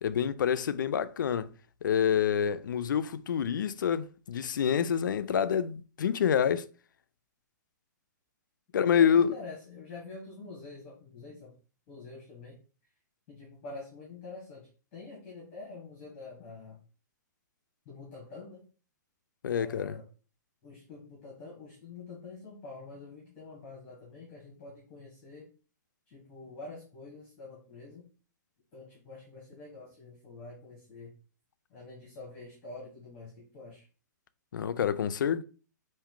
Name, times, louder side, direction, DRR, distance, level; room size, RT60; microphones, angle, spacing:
voice 1, 0.0-1.5 1.8-6.7 8.7-9.3 19.4-20.0 34.5-35.4, left 8 dB, 90° left, 0.4 m, -27 dB
voice 2, 9.0-11.5 11.9-12.6 13.3-16.8 17.8-18.6 19.5-20.1 20.6-25.5 26.1-28.0 28.7-31.1 31.7-33.8, left 3 dB, 15° left, 1.2 m, -46 dB
4.6 x 2.6 x 3.7 m
hypercardioid pair, 180°, 10 cm